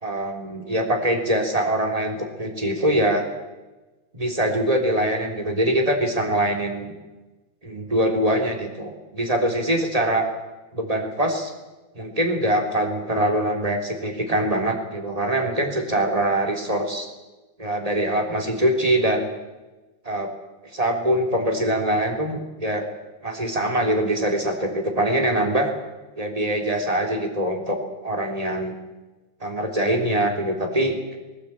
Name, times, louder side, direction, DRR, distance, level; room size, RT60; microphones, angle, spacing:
voice 1, 0.0-3.2 4.1-6.9 7.6-10.3 10.7-11.5 12.0-17.1 17.6-19.3 20.0-20.3 20.7-22.9 23.2-25.7 26.2-27.8 28.0-28.8 29.4-31.2, right 1 dB, 20° right, 2 dB, 3.6 m, -23 dB
21.0 x 18.5 x 8.8 m, 1.1 s
omnidirectional pair, 2.1 m